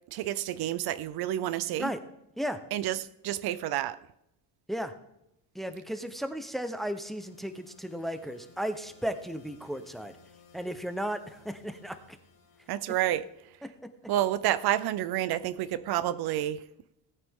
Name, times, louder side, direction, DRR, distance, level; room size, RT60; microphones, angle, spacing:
voice 1, 0.1-1.9 2.7-4.0 12.7-13.3 14.1-16.6, right 13 dB, 70° right, 0.6 m, -29 dB
voice 2, 5.5-10.2 10.5-12.2 13.6-13.7, equal, ahead, 0.8 m, -35 dB
sound 1, 5.8-14.0, left 5 dB, 65° left, 2.3 m, -60 dB
17.5 x 9.1 x 3.7 m
cardioid pair, 125°, 40 cm